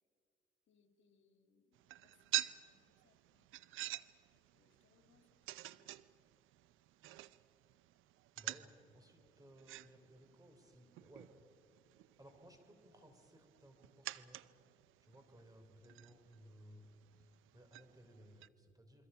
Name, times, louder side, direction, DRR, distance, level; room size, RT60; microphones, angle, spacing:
voice 1, 0.7-3.5 4.3-6.0, left 5 dB, 70° left, 5 dB, 2.5 m, -75 dB
sound 1, 1.7-18.5, right 15 dB, 85° right, 0.6 m, -48 dB
voice 2, 8.4-11.3 12.2-14.4 15.0-16.9 17.1-19.1, equal, 20° right, 6 dB, 3.6 m, -61 dB
28.5 x 23.0 x 5.7 m, 2.4 s
cardioid pair, 90°, 20 cm